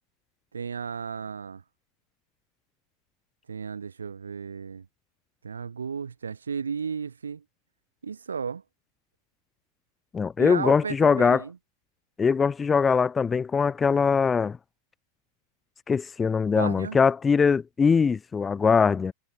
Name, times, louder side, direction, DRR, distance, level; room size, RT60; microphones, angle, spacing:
voice 1, 0.5-1.6 3.5-4.8 5.4-7.4 8.0-8.6 10.4-11.6 16.5-17.0, right 6 dB, 70° right, 1.2 m, -34 dB
voice 2, 10.1-11.4 12.2-14.6 15.9-19.1, left 5 dB, 15° left, 0.4 m, -22 dB
figure-of-eight pair, 90°, 0 cm